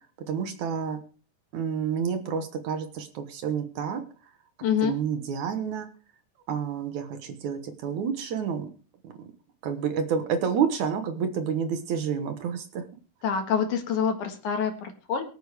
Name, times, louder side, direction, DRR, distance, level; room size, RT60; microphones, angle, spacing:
voice 1, 0.3-1.0 1.5-4.0 4.8-5.9 6.5-8.7 9.0-9.3 9.6-12.8, right 7 dB, 65° right, 7 dB, 2.4 m, -29 dB
voice 2, 4.6-5.0 13.2-15.2, left 7 dB, 65° left, 5 dB, 3.0 m, -26 dB
23.0 x 8.2 x 3.4 m, 0.37 s
omnidirectional pair, 4.0 m